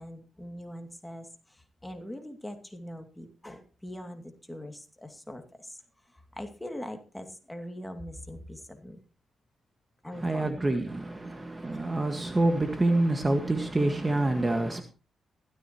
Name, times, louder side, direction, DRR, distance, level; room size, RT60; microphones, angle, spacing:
voice 1, 0.0-9.0 10.0-10.7 11.9-12.0, left 1 dB, 10° left, 2.5 m, -42 dB
voice 2, 10.2-14.8, right 2 dB, 25° right, 1.7 m, -27 dB
16.0 x 13.5 x 3.1 m
cardioid pair, 85°, 0 cm